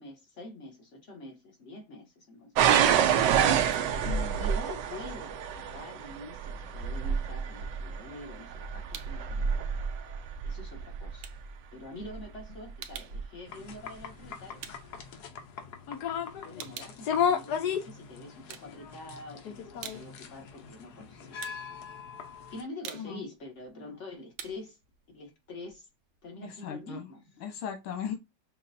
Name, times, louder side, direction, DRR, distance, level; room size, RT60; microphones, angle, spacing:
voice 1, 0.0-3.1 4.4-9.7 10.4-11.3 11.7-14.6 15.8-21.5 22.5-24.8 25.1-25.9 26.2-27.4, left 2 dB, 40° left, 1.5 m, -46 dB
sound 1, 2.6-11.4 12.1-12.5 13.1-13.2, right 8 dB, 70° right, 1.1 m, -28 dB
voice 2, 4.0-4.5 23.0-23.3 26.4-27.1 27.4-28.2, left 8 dB, 85° left, 1.8 m, -37 dB
sound 2, 8.2-9.3 9.6-15.9 16.2-18.0 18.3-19.2 19.6-26.3, right 9 dB, 90° right, 1.5 m, -48 dB
sound 3, 13.5-22.6, left 7 dB, 60° left, 1.2 m, -35 dB
6.5 x 2.5 x 2.6 m
omnidirectional pair, 2.2 m